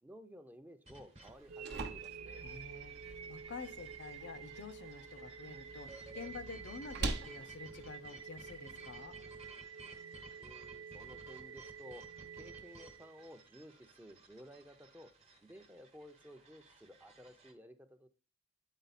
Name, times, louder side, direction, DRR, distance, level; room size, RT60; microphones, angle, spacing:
voice 1, 0.0-2.5 10.4-12.1 12.3-15.1 15.4-18.1, equal, 10° right, 0.6 m, -55 dB
sound 1, 0.9-17.5, right 2 dB, 30° right, 1.0 m, -58 dB
sound 2, 1.2-9.2, right 2 dB, 55° right, 0.8 m, -46 dB
sound 3, 1.5-13.5, right 6 dB, 85° right, 0.5 m, -50 dB
voice 2, 2.4-9.2, left 4 dB, 55° left, 0.5 m, -49 dB
8.1 x 4.2 x 4.1 m
head